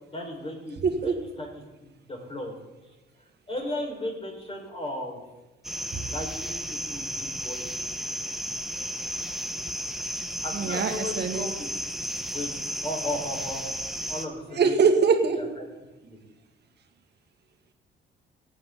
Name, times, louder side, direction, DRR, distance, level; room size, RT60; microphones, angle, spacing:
voice 1, 0.1-1.3 1.8-2.6 3.5-5.2 6.1-7.6 10.4-11.7 12.3-12.5 12.8-13.6 14.1-14.7 15.3-15.6 16.0-16.2, left 1 dB, 30° left, -1 dB, 4.9 m, -35 dB
voice 2, 0.8-1.2 5.9-6.0 10.5-11.5 14.5-15.5, right 5 dB, 55° right, 5 dB, 2.0 m, -23 dB
sound 1, 5.6-14.3, equal, ahead, 1.2 m, -33 dB
24.0 x 8.6 x 3.9 m, 1.1 s
cardioid pair, 90°, 20 cm